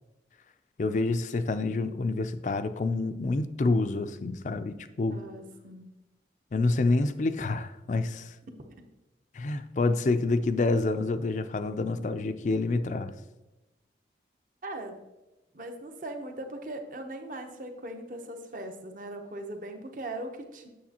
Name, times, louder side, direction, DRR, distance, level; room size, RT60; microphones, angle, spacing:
voice 1, 0.8-5.2 6.5-8.4 9.3-13.1, left 3 dB, 45° left, 11 dB, 0.4 m, -28 dB
voice 2, 5.1-5.9 14.6-15.0 15.5-20.7, right 1 dB, 45° right, 5 dB, 0.8 m, -39 dB
8.4 x 6.5 x 2.8 m, 1.0 s
head